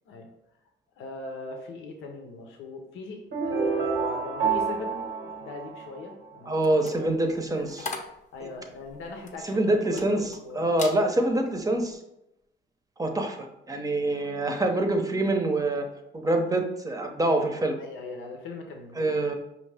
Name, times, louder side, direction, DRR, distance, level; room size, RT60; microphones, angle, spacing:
voice 1, 1.0-5.0 5.2-6.5 6.9-7.1 7.6-7.7 8.3-10.7 14.0-14.2 17.8-19.3, left 3 dB, 85° left, 3 dB, 0.7 m, -40 dB
sound 1, 3.3-6.4, right 5 dB, 75° right, 0.9 m, -28 dB
voice 2, 6.5-7.9 8.4-8.5 9.4-10.3 10.5-12.0 13.0-15.9 16.1-17.8 19.0-19.3, right 2 dB, 15° right, 4 dB, 0.7 m, -25 dB
sound 2, 6.6-10.4 10.7-11.0 11.5-11.8, left 4 dB, 35° left, 0.7 m, -40 dB
5.2 x 2.8 x 3.3 m, 0.85 s
cardioid pair, 90°, 20 cm